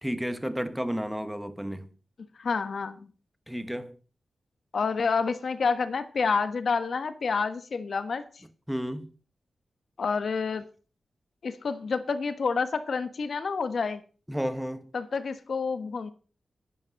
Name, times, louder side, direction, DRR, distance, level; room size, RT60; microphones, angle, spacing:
voice 1, 0.0-1.9 3.5-4.0 8.7-9.1 14.3-14.9, equal, 5° right, 1.2 m, -32 dB
voice 2, 2.4-3.0 4.7-8.2 10.0-10.6 11.4-14.0 14.9-16.1, left 5 dB, 55° left, 1.3 m, -28 dB
11.0 x 10.5 x 5.2 m
wide cardioid pair, 150°, 0 cm